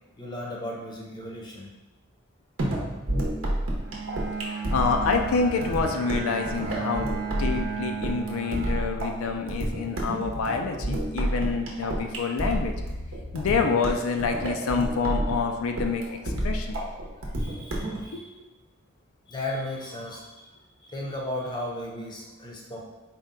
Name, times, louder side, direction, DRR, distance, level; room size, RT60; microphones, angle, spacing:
voice 1, 0.2-1.7 4.4-4.7 17.4-18.3 19.3-20.5 20.8-22.8, left 1 dB, 20° left, -2 dB, 0.6 m, -35 dB
sound 1, 2.6-18.0, right 1 dB, 80° right, 0.8 m, -30 dB
Bowed string instrument, 3.8-9.6, right 5 dB, 50° right, 0.5 m, -35 dB
voice 2, 4.5-12.7 13.3-16.8 18.1-18.2, left 4 dB, 85° left, 4 dB, 0.4 m, -27 dB
4.1 x 2.2 x 3.7 m, 1.2 s
head